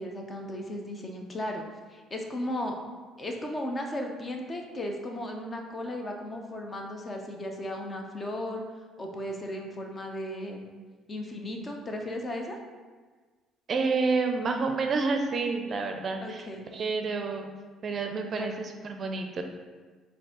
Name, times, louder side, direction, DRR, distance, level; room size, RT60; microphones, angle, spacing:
voice 1, 0.0-1.6 1.9-2.8 3.2-8.6 9.0-10.7 11.1-12.6 16.2-16.7 18.4-18.5, left 1 dB, 30° left, 2 dB, 0.7 m, -35 dB
voice 2, 13.7-16.4 16.7-17.5 17.8-19.4, right 4 dB, 45° right, 5 dB, 0.5 m, -29 dB
4.5 x 2.7 x 3.8 m, 1.4 s
supercardioid pair, 70°, 0 cm